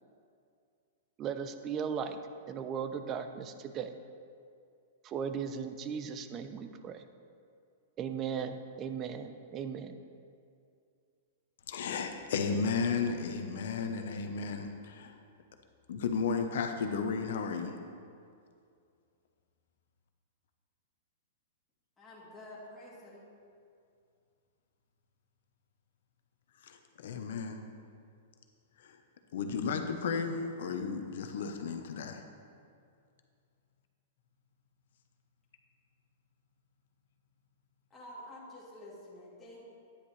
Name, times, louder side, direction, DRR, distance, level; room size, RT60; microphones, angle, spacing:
voice 1, 1.2-2.2 2.5-3.9 5.0-7.0 8.0-9.9, right 7 dB, 30° right, 9 dB, 0.6 m, -37 dB
voice 2, 11.7-15.1 15.9-17.8 26.6-27.6 28.8-29.0 29.3-32.2, left 5 dB, 70° left, 6 dB, 0.9 m, -34 dB
voice 3, 22.0-23.2 37.9-39.7, left 1 dB, 10° left, -8 dB, 2.2 m, -49 dB
10.0 x 9.3 x 3.3 m, 2.4 s
hypercardioid pair, 130°, 0 cm